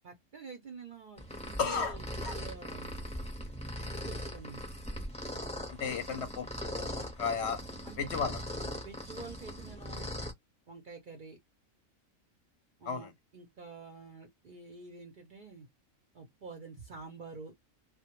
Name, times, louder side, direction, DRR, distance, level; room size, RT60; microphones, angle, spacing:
voice 1, 0.0-3.0 3.8-4.7 7.8-8.2 8.6-10.1 10.7-11.4 12.8-15.7 16.1-17.5, right 4 dB, 55° right, 0.6 m, -48 dB
sound 1, 1.2-10.3, equal, 10° left, 0.5 m, -40 dB
voice 2, 1.6-2.4 5.7-7.6 8.0-8.4 12.9-13.1, left 6 dB, 65° left, 0.8 m, -34 dB
2.2 x 2.1 x 2.8 m
omnidirectional pair, 1.4 m